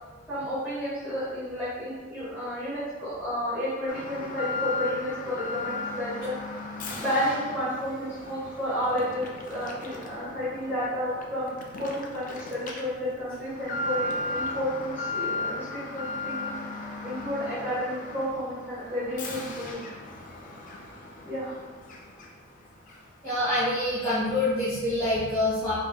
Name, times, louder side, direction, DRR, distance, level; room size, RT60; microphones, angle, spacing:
voice 1, 0.3-6.3 6.9-16.5 17.0-19.8 21.2-21.5, equal, 10° right, -13 dB, 1.4 m, -31 dB
Alarm, 3.9-22.5 22.9-23.0 23.6-23.7, left 2 dB, 40° left, 0.4 m, -36 dB
voice 2, 23.2-25.7, left 1 dB, 15° left, -15 dB, 1.5 m, -26 dB
4.9 x 2.6 x 2.3 m, 1.4 s
head